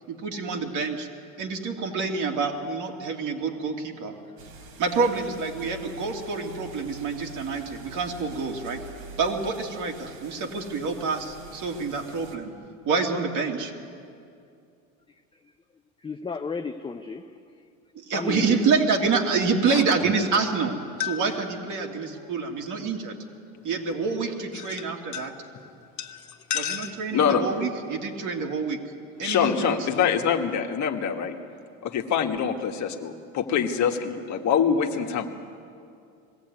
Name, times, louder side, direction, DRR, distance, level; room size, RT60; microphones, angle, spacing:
voice 1, 0.1-1.1 1.4-4.1 4.8-8.8 9.2-12.5 12.8-13.7 17.9-23.2 23.6-25.3 26.5-28.8 29.2-30.1, right 4 dB, 45° right, 2 dB, 2.9 m, -27 dB
sound 1, 4.4-12.4, right 2 dB, 60° right, 3.3 m, -45 dB
voice 2, 16.0-17.3 18.1-18.7, left 4 dB, 10° left, 5 dB, 0.7 m, -33 dB
voice 3, 26.5-27.4 29.2-31.4 31.8-35.3, left 7 dB, 40° left, 4 dB, 1.8 m, -25 dB
21.0 x 15.0 x 9.5 m, 2.4 s
hypercardioid pair, 100°, 42 cm